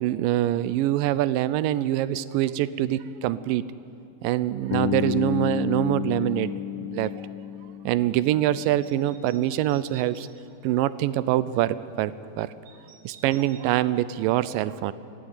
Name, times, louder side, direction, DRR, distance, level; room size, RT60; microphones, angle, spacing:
voice 1, 0.0-3.6 4.2-6.5 6.8-7.1 7.9-10.3 10.6-12.5 13.1-14.9, right 13 dB, 85° right, 16 dB, 2.3 m, -24 dB
Bass guitar, 4.7-8.7, left 11 dB, 85° left, 2.3 m, -31 dB
sound 1, 8.6-10.3 12.7-13.6, right 6 dB, 60° right, 2.7 m, -50 dB
21.5 x 16.5 x 8.8 m, 2.7 s
omnidirectional pair, 3.9 m